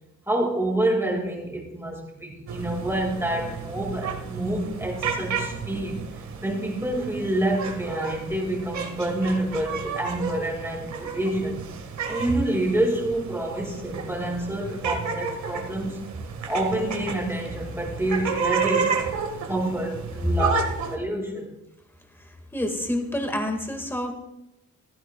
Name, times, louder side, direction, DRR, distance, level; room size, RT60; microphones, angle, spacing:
voice 1, 0.3-6.0 6.4-11.7 12.1-16.0 16.5-19.0 19.5-20.6 20.9-21.5, right 1 dB, 10° right, 0 dB, 2.0 m, -27 dB
sound 1, 2.5-21.0, right 5 dB, 75° right, 1.6 m, -32 dB
voice 2, 22.5-24.1, left 1 dB, 10° left, 4 dB, 1.7 m, -28 dB
15.5 x 15.0 x 2.3 m, 0.86 s
wide cardioid pair, 140°, 29 cm